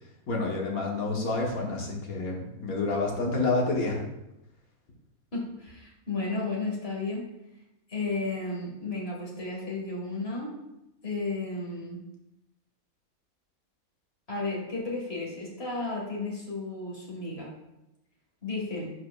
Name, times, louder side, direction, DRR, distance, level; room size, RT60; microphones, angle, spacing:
voice 1, 0.3-4.0, left 3 dB, 70° left, -1 dB, 1.7 m, -28 dB
voice 2, 5.3-7.3 7.9-10.5 11.0-12.0 14.3-17.5 18.4-18.9, left 3 dB, 40° left, -2 dB, 2.0 m, -33 dB
11.0 x 4.8 x 2.4 m, 0.89 s
omnidirectional pair, 1.6 m